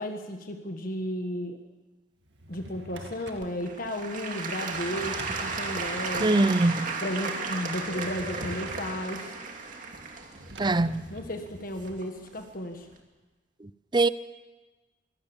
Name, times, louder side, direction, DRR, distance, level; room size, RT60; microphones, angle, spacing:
voice 1, 0.0-1.6 2.5-6.3 7.0-9.4 10.9-12.9, left 1 dB, 50° left, 5 dB, 1.5 m, -34 dB
Drawer open or close, 2.2-3.5 4.7-6.4 7.7-9.0 10.3-12.0, right 1 dB, 70° right, 2.4 m, -44 dB
Applause / Crowd, 3.4-12.3 12.9-13.0, right 4 dB, 45° right, 2.4 m, -35 dB
voice 2, 6.2-6.9 10.6-11.1 13.6-14.1, right 2 dB, 25° right, 16 dB, 0.6 m, -23 dB
23.5 x 17.0 x 7.2 m, 1.2 s
head